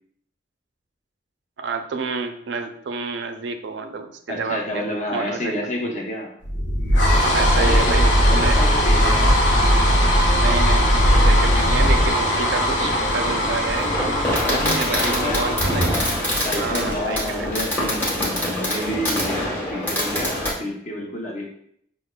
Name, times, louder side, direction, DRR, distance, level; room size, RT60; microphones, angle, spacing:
voice 1, 1.6-4.8 5.1-5.7 7.3-8.6 10.4-13.9 14.4-16.0 16.5-17.5, right 4 dB, 75° right, 6 dB, 0.4 m, -29 dB
voice 2, 4.3-6.3 7.5-9.4 14.4-15.9 16.4-21.5, left 1 dB, 40° left, -1 dB, 0.8 m, -29 dB
sound 1, 6.4-16.9, equal, 90° left, 0.7 m, -19 dB
Fireworks, 11.0-20.5, equal, 10° left, 1.0 m, -26 dB
6.1 x 2.1 x 2.2 m, 0.67 s
head